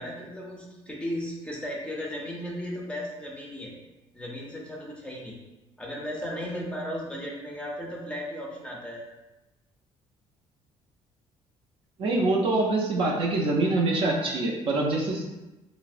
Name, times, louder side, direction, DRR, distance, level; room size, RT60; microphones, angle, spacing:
voice 1, 0.0-3.7 4.1-5.4 5.8-9.0, equal, 10° left, -2 dB, 0.5 m, -35 dB
voice 2, 12.0-15.2, right 2 dB, 50° right, -1 dB, 0.5 m, -25 dB
3.2 x 2.0 x 2.4 m, 1.0 s
cardioid pair, 125°, 11 cm